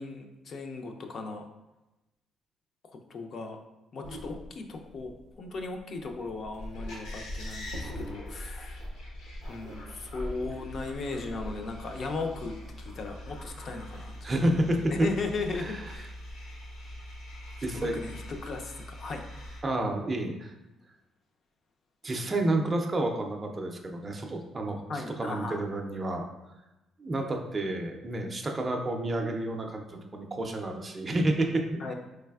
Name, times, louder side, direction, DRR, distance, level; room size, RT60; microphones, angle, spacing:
voice 1, 0.0-1.5 2.9-3.6 3.9-8.8 9.5-14.5 14.9-16.1 17.7-19.2 24.9-25.7 31.8-31.9, left 3 dB, 50° left, 4 dB, 0.4 m, -37 dB
sound 1, 4.0-19.6, left 1 dB, 85° left, 1.0 m, -42 dB
voice 2, 14.2-15.1 15.6-15.7 17.6-18.0 19.6-20.5 22.0-24.8 25.2-26.3 27.0-31.9, right 1 dB, 25° right, 3 dB, 0.4 m, -29 dB
4.0 x 3.2 x 2.3 m, 0.98 s
cardioid pair, 115°, 0 cm